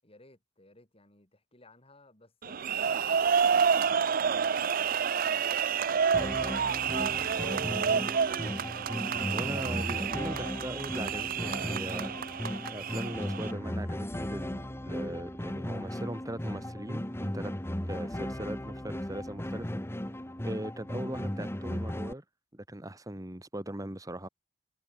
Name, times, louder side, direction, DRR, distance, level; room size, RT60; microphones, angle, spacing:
voice 1, 0.0-5.6 5.9-8.1, left 2 dB, 35° left, 7.7 m, -58 dB
sound 1, 2.4-13.5, right 7 dB, 50° right, 0.5 m, -29 dB
sound 2, 6.1-22.1, left 1 dB, 15° left, 1.3 m, -36 dB
voice 2, 9.3-12.1 12.7-17.5 17.8-19.8 20.4-22.2 22.5-24.3, right 1 dB, 20° right, 3.1 m, -39 dB
head